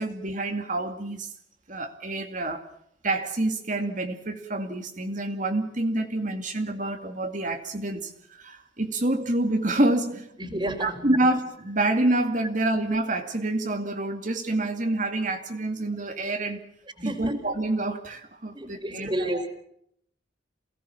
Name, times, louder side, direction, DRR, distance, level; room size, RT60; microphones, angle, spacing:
voice 1, 0.0-1.3 1.7-2.7 3.0-10.3 10.8-16.6 17.0-19.3, right 2 dB, 40° right, 5 dB, 2.2 m, -27 dB
voice 2, 10.4-11.0 17.0-17.3 18.5-19.5, right 1 dB, 25° right, 0 dB, 3.8 m, -31 dB
28.5 x 18.5 x 7.1 m, 0.71 s
head